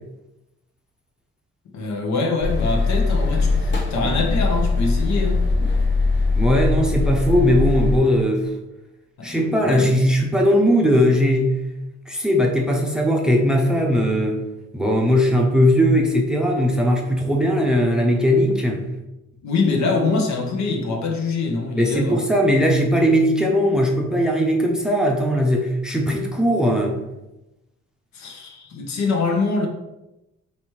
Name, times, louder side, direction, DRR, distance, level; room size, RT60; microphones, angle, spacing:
voice 1, 1.7-5.4 9.2-10.0 19.4-22.2 28.1-29.7, left 3 dB, 65° left, 2 dB, 0.9 m, -24 dB
sound 1, 2.4-8.0, left 3 dB, 40° left, 1.1 m, -21 dB
voice 2, 6.3-8.5 9.2-11.5 12.1-14.4 14.7-18.9 21.7-27.0, equal, ahead, 1 dB, 0.7 m, -19 dB
4.1 x 3.3 x 3.1 m, 0.95 s
cardioid pair, 90°, 30 cm